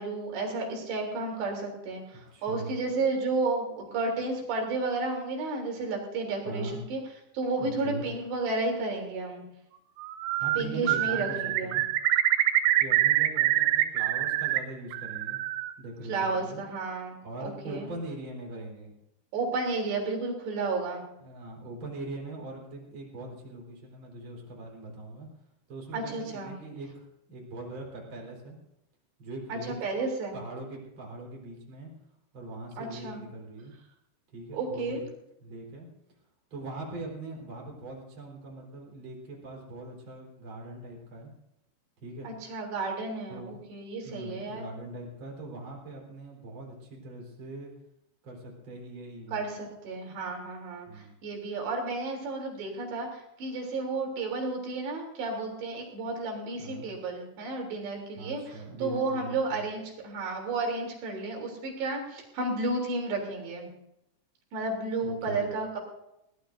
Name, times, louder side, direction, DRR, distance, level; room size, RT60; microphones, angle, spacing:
voice 1, 0.0-7.0 7.3-9.4 10.6-11.8 16.1-17.9 19.3-21.0 25.9-26.5 29.5-30.4 32.8-33.2 34.5-35.0 42.2-44.7 49.3-63.7 64.5-65.8, right 3 dB, 70° right, 1 dB, 5.5 m, -32 dB
voice 2, 2.3-2.8 6.4-6.8 7.6-8.1 10.4-11.9 12.8-15.4 15.8-16.6 17.2-18.9 21.2-25.3 25.7-28.6 29.2-29.7 30.3-31.9 32.3-33.7 34.3-35.0 35.4-35.9 36.5-41.3 42.0-42.3 43.3-43.6 44.0-47.7 48.2-49.4 50.9-51.1 56.6-56.9 58.2-59.6 65.0-65.5, right 2 dB, 30° right, -2 dB, 4.7 m, -41 dB
Bird, 10.0-10.6 10.9-14.6 14.9-15.7, right 14 dB, 90° right, 3.1 m, -25 dB
21.5 x 18.0 x 2.7 m, 0.83 s
omnidirectional pair, 5.1 m